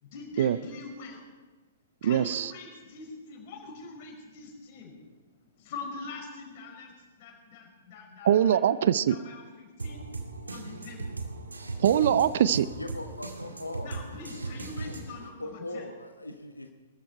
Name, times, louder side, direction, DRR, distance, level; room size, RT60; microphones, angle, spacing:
voice 1, 0.0-1.3 2.0-5.0 5.6-8.6 9.1-10.0 10.5-11.1 13.8-15.9, left 4 dB, 40° left, 0 dB, 5.0 m, -44 dB
voice 2, 2.0-2.5 8.2-9.2 11.8-12.7, right 10 dB, 50° right, 17 dB, 0.5 m, -22 dB
sound 1, 9.8-15.3, right 3 dB, 75° right, 1.9 m, -38 dB
voice 3, 12.7-13.9 15.4-16.7, left 2 dB, 85° left, 5 dB, 1.1 m, -39 dB
22.0 x 13.5 x 4.5 m, 1.3 s
figure-of-eight pair, 110°, 0 cm